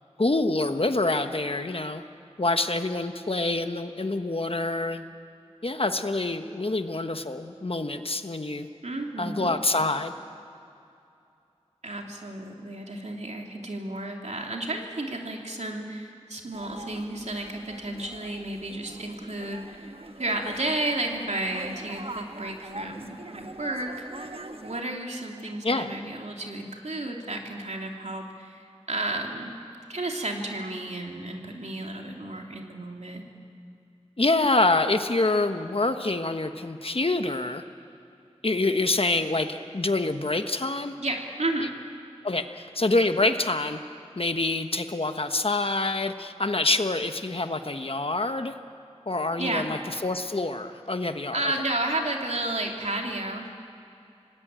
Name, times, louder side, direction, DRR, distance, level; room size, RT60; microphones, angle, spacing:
voice 1, 0.2-2.0 2.4-5.0 5.6-8.7 9.2-10.1 24.3-24.4 25.6-25.9 34.2-37.6 38.4-40.9 42.2-43.8 44.2-48.5 49.1-51.5, left 2 dB, 55° left, 7 dB, 1.3 m, -26 dB
voice 2, 8.8-9.6 11.8-19.9 20.2-24.3 24.6-29.6 29.9-33.2 41.0-41.7 49.4-49.7 51.3-53.5, right 2 dB, 80° right, 1 dB, 2.9 m, -32 dB
sound 1, 16.5-24.8, right 2 dB, 55° right, 1.3 m, -43 dB
26.5 x 19.0 x 8.9 m, 2.6 s
wide cardioid pair, 50°, 11 cm